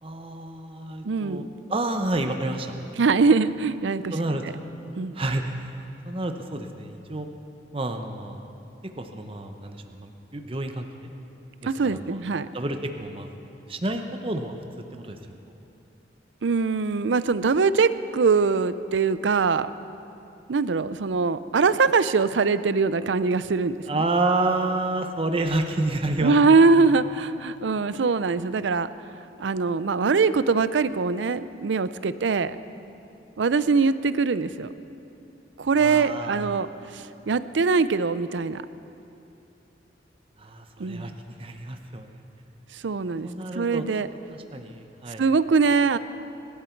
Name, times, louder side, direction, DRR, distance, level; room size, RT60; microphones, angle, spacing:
voice 1, 0.0-1.4 1.7-2.8 4.1-4.6 5.1-7.3 7.7-8.4 9.0-11.1 11.6-12.2 12.5-13.3 13.7-15.2 23.9-26.3 35.7-36.6 40.4-41.1 41.4-42.2 43.2-43.9 44.3-45.2, right 2 dB, 30° right, 5 dB, 0.8 m, -29 dB
voice 2, 1.0-1.5 3.0-4.1 4.9-5.2 11.6-12.5 16.4-19.7 20.5-24.0 26.2-28.9 29.4-32.6 33.4-34.7 35.6-36.7 36.9-38.6 40.8-41.1 42.7-43.3 43.5-44.1 45.2-46.0, right 4 dB, 90° right, 14 dB, 0.5 m, -22 dB
26.0 x 12.0 x 4.5 m, 2.8 s
head